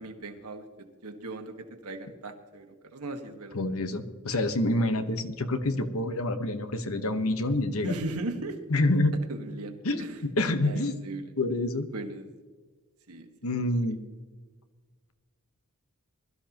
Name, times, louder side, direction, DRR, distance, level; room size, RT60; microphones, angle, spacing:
voice 1, 0.0-3.6 7.8-8.6 9.3-10.2 10.6-11.3 11.9-12.3 13.1-13.3, right 2 dB, 90° right, 5 dB, 1.7 m, -38 dB
voice 2, 3.5-7.9 8.7-9.1 9.8-10.9 11.4-11.8 13.4-14.0, left 2 dB, 70° left, 9 dB, 1.2 m, -27 dB
21.0 x 13.0 x 3.0 m, 1.4 s
head